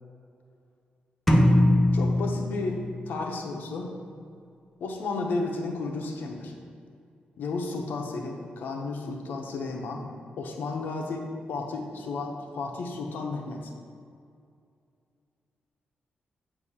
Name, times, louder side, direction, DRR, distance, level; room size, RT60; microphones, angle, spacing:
sound 1, 1.3-3.2, left 1 dB, 5° left, 0.6 m, -22 dB
voice 1, 1.9-3.9 4.8-6.5 7.4-10.0 10.4-13.7, left 3 dB, 75° left, 1 dB, 0.8 m, -33 dB
8.0 x 2.7 x 5.6 m, 2.3 s
wide cardioid pair, 160°, 3 cm